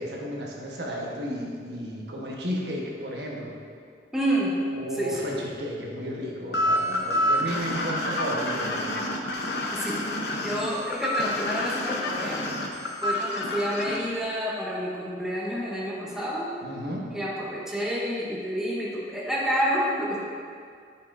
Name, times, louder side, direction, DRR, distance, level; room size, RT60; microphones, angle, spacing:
voice 1, 0.0-3.6 4.8-9.1 16.6-17.1, equal, 70° right, -2 dB, 1.2 m, -33 dB
voice 2, 4.1-4.5 5.0-5.3 9.7-10.0 10.4-12.4 13.0-16.5 17.1-20.2, equal, 5° right, -6 dB, 0.9 m, -29 dB
sound 1, 6.5-14.0, left 1 dB, 65° left, 0.8 m, -28 dB
12.0 x 5.6 x 2.6 m, 2.2 s
head